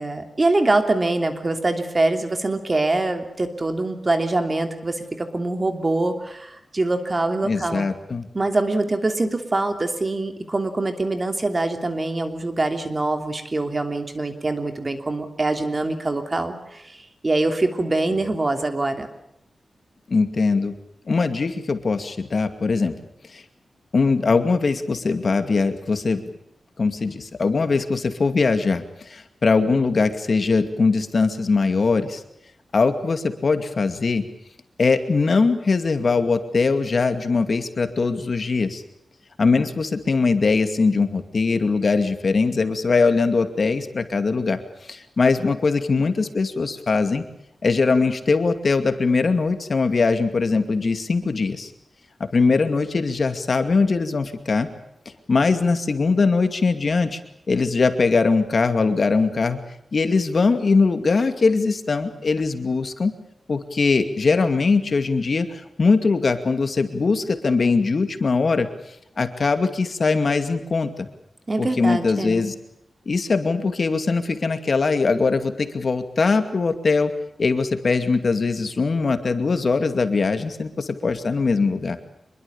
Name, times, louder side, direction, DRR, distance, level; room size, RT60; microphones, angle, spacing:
voice 1, 0.0-7.9 8.3-17.0 17.2-19.1 71.5-72.4, right 2 dB, 30° right, 6 dB, 3.1 m, -24 dB
voice 2, 7.4-8.3 20.1-20.7 21.1-22.9 23.3-23.4 23.9-26.2 26.8-32.2 32.7-34.2 34.8-38.8 39.4-47.2 47.6-51.7 52.3-54.7 55.3-57.2 57.5-59.6 59.9-63.1 63.5-68.7 69.2-71.1 71.6-72.5 73.1-77.1 77.4-82.0, left 4 dB, 50° left, 8 dB, 2.4 m, -21 dB
25.5 x 22.5 x 7.2 m, 0.77 s
wide cardioid pair, 115°, 0 cm